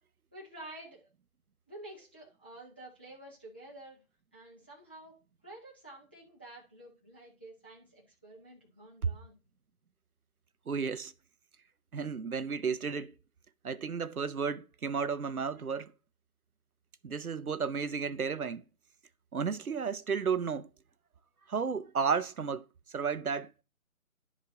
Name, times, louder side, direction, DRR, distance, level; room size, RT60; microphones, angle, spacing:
voice 1, 0.3-1.1 1.7-4.0 4.3-5.2 5.4-9.3, right 1 dB, 10° left, 0.6 m, -50 dB
voice 2, 10.7-11.1 11.9-13.1 13.6-15.9 17.0-18.6 19.3-20.7 21.5-23.5, right 6 dB, 90° right, 0.8 m, -33 dB
11.0 x 4.9 x 3.8 m
figure-of-eight pair, 150°, 42 cm